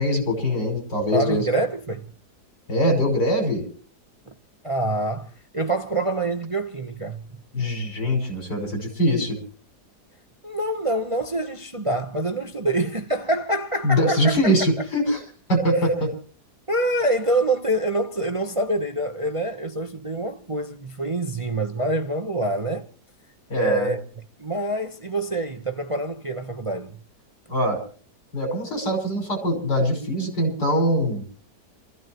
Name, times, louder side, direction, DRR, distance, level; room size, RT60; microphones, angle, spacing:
voice 1, 0.0-1.5 2.7-3.6 7.5-9.4 13.8-15.2 15.5-16.1 23.5-24.0 27.5-27.8 28.3-31.2, equal, 80° left, 6.8 m, -22 dB
voice 2, 1.1-2.1 4.6-7.2 10.4-14.5 16.7-22.8 23.5-24.0 24.4-27.0, right 1 dB, 25° right, 0.8 m, -26 dB
28.5 x 16.0 x 3.0 m
omnidirectional pair, 1.8 m